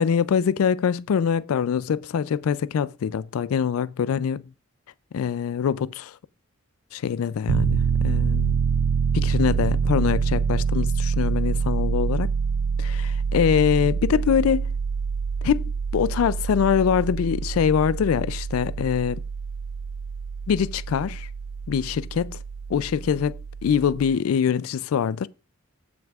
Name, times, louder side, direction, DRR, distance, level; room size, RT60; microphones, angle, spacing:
voice 1, 0.0-4.4 5.1-6.1 6.9-8.6 9.1-12.3 12.8-14.7 15.4-19.2 20.5-21.3 21.7-22.4 22.7-25.3, left 7 dB, 85° left, 0.3 m, -24 dB
Piano, 7.5-24.2, right 6 dB, 70° right, 0.4 m, -26 dB
16.0 x 6.1 x 2.4 m
head